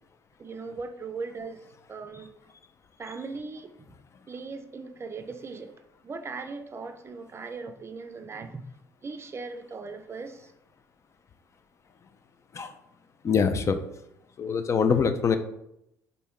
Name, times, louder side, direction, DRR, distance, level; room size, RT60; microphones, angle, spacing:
voice 1, 0.4-1.6 1.9-2.3 3.0-3.7 4.3-8.7 9.0-10.5, right 4 dB, 30° right, 7 dB, 0.5 m, -39 dB
voice 2, 13.2-13.8 14.4-15.4, left 6 dB, 35° left, 9 dB, 0.4 m, -24 dB
4.1 x 2.6 x 3.6 m, 0.80 s
figure-of-eight pair, 55°, 9 cm